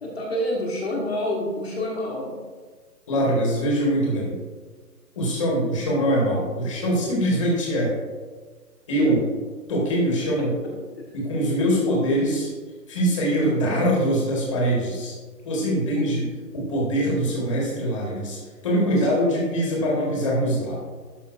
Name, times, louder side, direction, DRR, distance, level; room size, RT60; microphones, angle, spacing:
voice 1, 0.0-2.4 9.0-9.1 10.4-10.7 13.5-13.6 15.9-16.1 18.9-19.1, left 1 dB, 40° left, -2 dB, 1.2 m, -28 dB
voice 2, 3.1-4.3 5.1-7.9 8.9-9.2 9.7-10.5 11.1-12.5 12.9-15.1 15.4-16.2 16.5-20.8, equal, 20° left, -4 dB, 1.4 m, -23 dB
11.5 x 5.4 x 2.5 m, 1.4 s
hypercardioid pair, 165°, 49 cm